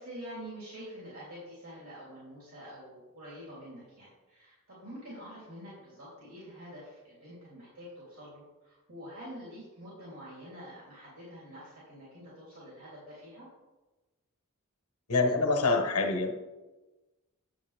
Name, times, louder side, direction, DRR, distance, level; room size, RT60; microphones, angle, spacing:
voice 1, 0.0-13.5, equal, 75° right, -7 dB, 3.4 m, -47 dB
voice 2, 15.1-16.4, left 3 dB, 85° left, 3 dB, 1.2 m, -26 dB
9.9 x 7.7 x 3.5 m, 1.1 s
head